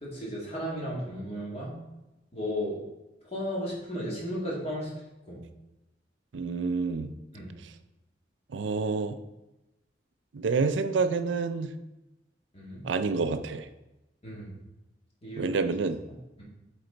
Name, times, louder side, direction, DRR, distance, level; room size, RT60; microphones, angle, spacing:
voice 1, 0.0-1.8 2.3-2.8 3.3-4.9 5.2-5.4 7.3-7.5 12.5-12.8 14.2-14.5 15.2-15.5 16.4-16.5, equal, 35° left, -5 dB, 2.2 m, -34 dB
voice 2, 6.3-7.1 7.6-7.7 8.5-9.2 10.3-11.7 12.8-13.7 15.4-16.0, right 4 dB, 75° right, 10 dB, 0.5 m, -28 dB
7.7 x 4.1 x 3.9 m, 0.98 s
head